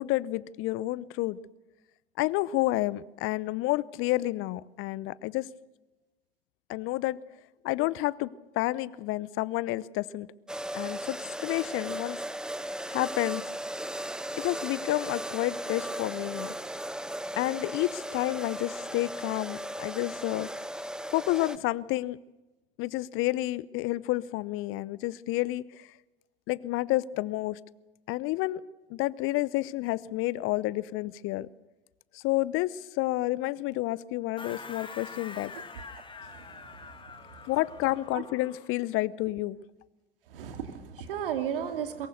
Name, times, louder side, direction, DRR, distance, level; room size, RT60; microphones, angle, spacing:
voice 1, 0.0-1.4 2.2-5.5 6.7-7.2 7.6-8.3 8.5-10.3 10.7-12.2 12.9-13.5 14.4-16.5 17.4-20.5 21.1-22.2 22.8-25.9 26.5-27.6 28.1-28.6 28.9-31.5 32.1-35.5 37.5-39.6, left 18 dB, 45° left, 21 dB, 0.8 m, -30 dB
sound 1, 10.5-21.6, right 1 dB, 5° right, 0.8 m, -36 dB
sound 2, 34.4-38.8, left 4 dB, 15° left, 2.1 m, -45 dB
voice 2, 36.2-37.4 38.1-38.2 40.3-42.1, right 9 dB, 70° right, 6 dB, 2.7 m, -35 dB
23.0 x 22.0 x 6.7 m, 1.1 s
figure-of-eight pair, 75°, 29 cm